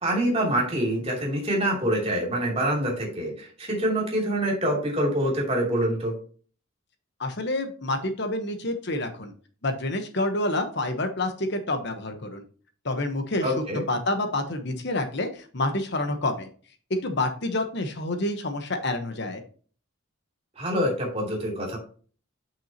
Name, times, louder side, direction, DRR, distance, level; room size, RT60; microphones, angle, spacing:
voice 1, 0.0-6.1 13.4-13.8 20.6-21.8, right 1 dB, 30° right, -1 dB, 2.8 m, -25 dB
voice 2, 7.2-9.3 9.6-12.4 12.8-13.5 13.9-16.5 16.9-19.4, left 2 dB, 55° left, 6 dB, 1.1 m, -28 dB
8.7 x 6.0 x 2.9 m, 0.41 s
head